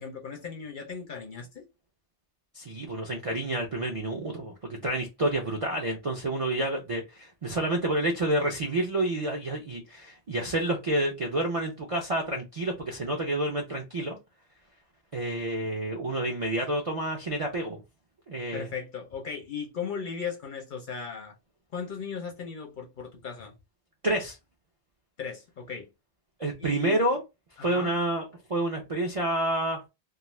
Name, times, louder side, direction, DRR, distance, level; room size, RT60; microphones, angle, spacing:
voice 1, 0.0-1.6 18.5-21.3 21.7-23.5 25.2-25.9 26.6-27.0 27.6-27.9, left 6 dB, 55° left, 0.6 m, -37 dB
voice 2, 2.5-14.2 15.1-17.8 18.3-18.7 24.0-24.4 26.4-27.2 27.6-29.8, right 1 dB, 55° right, 0.4 m, -29 dB
2.4 x 2.3 x 3.0 m
omnidirectional pair, 1.2 m